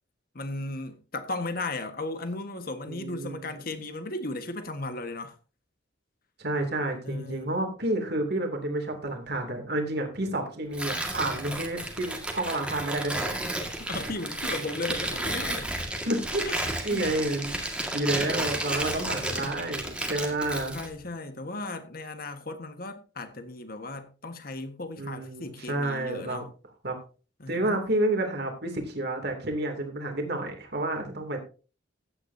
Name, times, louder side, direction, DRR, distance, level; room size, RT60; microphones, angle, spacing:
voice 1, 0.3-5.3 7.0-7.5 13.8-15.7 16.4-16.6 16.9-17.2 19.0-19.2 20.3-20.4 20.7-26.5 27.4-27.8, left 2 dB, 50° left, 1.5 m, -36 dB
voice 2, 2.9-3.5 6.4-13.4 16.1-17.6 17.9-20.8 25.0-26.4 26.8-27.0 27.5-31.4, right 1 dB, 55° right, 2.7 m, -30 dB
Tearing, 10.7-20.9, right 1 dB, 5° right, 1.8 m, -32 dB
15.0 x 9.7 x 2.7 m
head